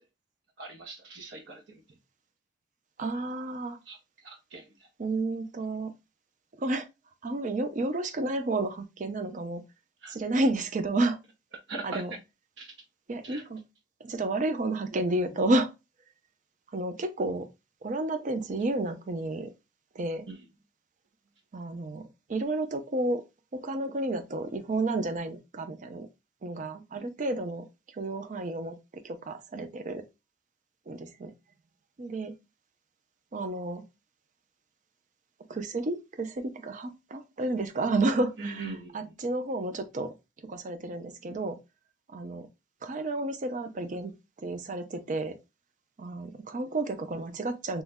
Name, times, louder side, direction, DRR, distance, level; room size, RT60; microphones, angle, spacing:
voice 1, 0.6-1.8 3.9-4.0 4.2-4.7 10.0-10.1 11.7-12.0 12.6-12.7 13.2-13.4 20.3-20.4 26.9-27.1 38.4-39.1, right 3 dB, 80° right, 0.8 m, -41 dB
voice 2, 3.0-3.8 5.0-5.9 6.6-6.9 7.2-9.6 10.1-11.2 11.8-12.1 13.1-13.6 14.0-15.7 16.7-17.5 17.8-19.5 19.9-20.3 21.5-23.2 23.5-26.1 26.4-27.7 27.9-28.8 29.0-30.0 30.9-31.3 32.0-32.3 33.3-33.8 35.5-40.1 40.4-41.6 42.1-42.5 42.8-44.1 44.4-45.3 46.0-47.8, right 2 dB, 45° right, 0.5 m, -31 dB
3.1 x 2.2 x 3.3 m
head